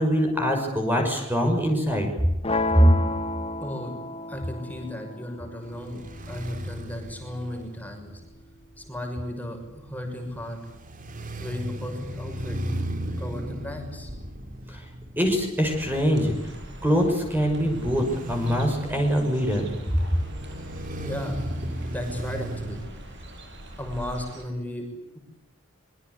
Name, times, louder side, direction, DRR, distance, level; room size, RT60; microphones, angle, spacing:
voice 1, 0.0-2.1 2.7-3.0 14.7-14.9 15.2-16.3 16.8-20.0, equal, 10° right, 2 dB, 6.1 m, -23 dB
sound 1, 2.4-8.5, left 2 dB, 30° left, 1.7 m, -33 dB
voice 2, 3.6-4.0 4.3-8.1 8.8-10.6 11.4-12.6 13.2-14.1 21.0-22.8 23.8-24.9, left 1 dB, 10° left, 3 dB, 6.5 m, -35 dB
sound 2, 5.6-22.9, equal, 40° right, 3.1 m, -36 dB
sound 3, 15.6-24.4, right 1 dB, 60° right, 7.5 m, -43 dB
26.0 x 23.5 x 8.3 m, 0.95 s
head